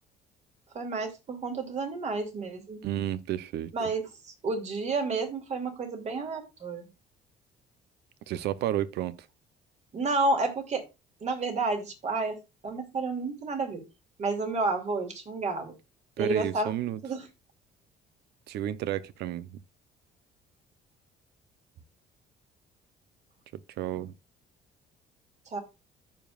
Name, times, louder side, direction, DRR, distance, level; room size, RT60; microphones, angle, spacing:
voice 1, 0.7-2.8 3.7-6.9 9.9-10.8 11.2-12.4 12.6-13.8 14.2-15.8 16.2-16.7 17.0-17.3 25.5-25.6, right 3 dB, 45° right, 2.7 m, -30 dB
voice 2, 2.8-3.7 8.3-9.2 16.2-17.0 18.5-19.5 23.8-24.1, right 12 dB, 75° right, 0.8 m, -31 dB
14.0 x 5.2 x 2.4 m
cardioid pair, 110°, 17 cm